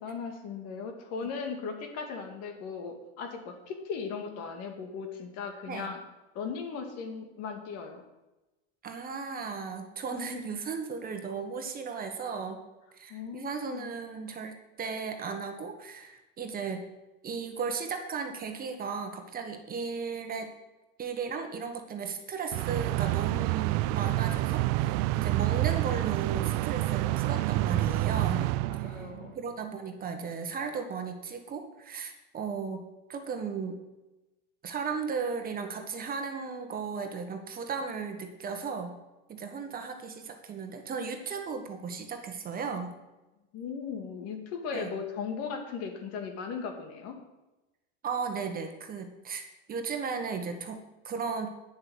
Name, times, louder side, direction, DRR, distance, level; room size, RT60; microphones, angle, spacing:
voice 1, 0.0-6.0 6.3-8.0 13.1-13.9 25.0-25.1 28.7-29.3 43.5-47.1, left 5 dB, 55° left, 4 dB, 2.1 m, -37 dB
voice 2, 8.8-12.6 12.9-16.8 17.2-20.5 21.0-28.5 28.8-29.1 29.3-33.8 34.6-39.0 39.3-42.9 44.7-44.9 48.0-49.4 49.7-51.5, right 5 dB, 30° right, 5 dB, 1.4 m, -36 dB
sound 1, 22.5-29.3, right 17 dB, 60° right, 0.4 m, -28 dB
9.1 x 7.5 x 6.3 m, 1.0 s
supercardioid pair, 130°, 30 cm